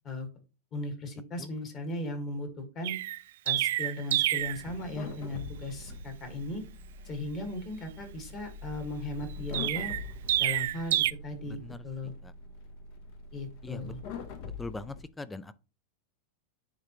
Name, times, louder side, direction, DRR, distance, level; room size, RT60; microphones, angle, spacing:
voice 1, 0.7-3.0 3.5-6.6 7.1-9.9 10.4-12.1 13.3-14.0, left 1 dB, 30° left, 1.8 m, -37 dB
Chirp tweet, 2.8-4.6 9.5-11.1, right 14 dB, 70° right, 0.3 m, -28 dB
sound 1, 4.4-15.0, left 3 dB, 50° left, 0.9 m, -44 dB
voice 2, 11.5-11.8 12.2-12.3 13.6-13.9 14.6-15.5, left 3 dB, 10° left, 0.3 m, -41 dB
9.8 x 3.8 x 3.0 m
supercardioid pair, 160°, 0 cm